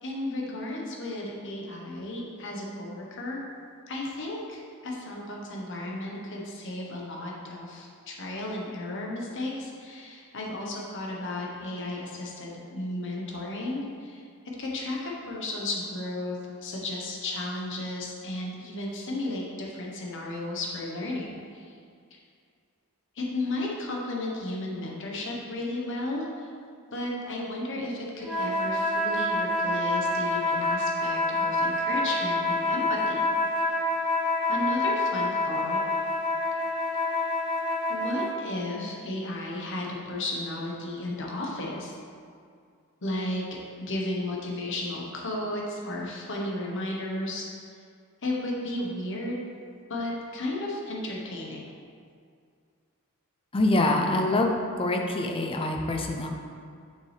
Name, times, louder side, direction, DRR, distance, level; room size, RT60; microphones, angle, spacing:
voice 1, 0.0-3.4 3.9-14.2 14.6-21.7 22.1-22.2 23.1-26.5 26.9-33.3 34.5-35.8 37.9-41.9 43.0-43.4 43.8-47.4 48.2-49.4 49.9-51.7, left 1 dB, 60° left, -2 dB, 1.1 m, -34 dB
sound 1, 28.2-38.4, left 2 dB, 5° right, 0.8 m, -27 dB
voice 2, 53.5-54.5 54.8-56.3, left 2 dB, 25° left, 3 dB, 0.5 m, -25 dB
6.7 x 6.1 x 3.3 m, 2.2 s
head